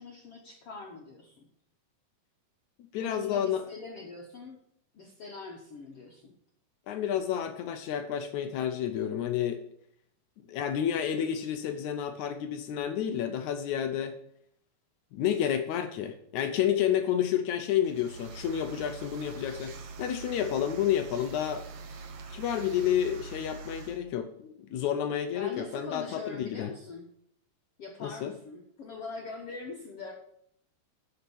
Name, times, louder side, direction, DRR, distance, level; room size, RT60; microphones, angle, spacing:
voice 1, 0.0-1.5 3.0-4.6 4.9-6.3 25.3-27.1 27.8-30.1, left 3 dB, 60° left, 0 dB, 1.7 m, -43 dB
voice 2, 2.9-3.7 6.9-9.6 10.5-14.2 15.1-21.6 22.3-26.7 28.0-28.3, left 9 dB, 75° left, 8 dB, 1.8 m, -30 dB
sound 1, 17.8-24.0, right 4 dB, 55° right, 1.9 m, -44 dB
11.5 x 5.3 x 6.9 m, 0.69 s
omnidirectional pair, 4.1 m